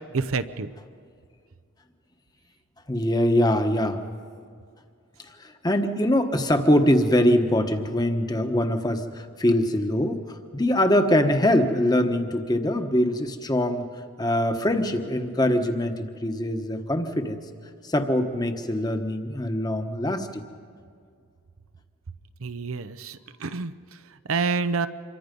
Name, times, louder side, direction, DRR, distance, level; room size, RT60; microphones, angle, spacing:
voice 1, 0.1-0.7 22.4-23.7 24.3-24.9, right 4 dB, 80° right, 12 dB, 0.8 m, -27 dB
voice 2, 2.9-4.0 5.4-13.9 14.2-17.4 17.8-20.4, left 1 dB, 20° left, 7 dB, 1.2 m, -23 dB
27.0 x 23.5 x 5.3 m, 2.2 s
head